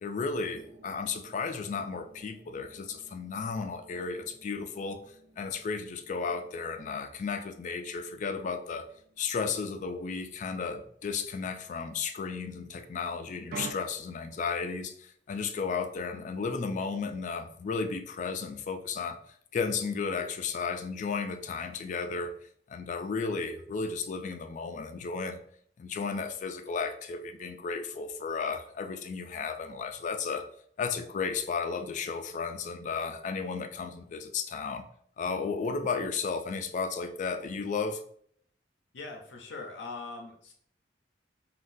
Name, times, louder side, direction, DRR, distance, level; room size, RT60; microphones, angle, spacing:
voice 1, 0.0-5.0 5.4-8.8 9.2-19.2 19.5-22.3 22.7-25.4 25.8-30.4 30.8-34.9 35.2-38.0, left 5 dB, 45° left, 8 dB, 0.3 m, -34 dB
sound 1, 0.6-12.1 13.5-13.7, right 4 dB, 55° right, 0.3 m, -51 dB
voice 2, 38.9-40.5, left 3 dB, 85° left, 0 dB, 0.6 m, -41 dB
3.8 x 2.2 x 2.5 m, 0.63 s
head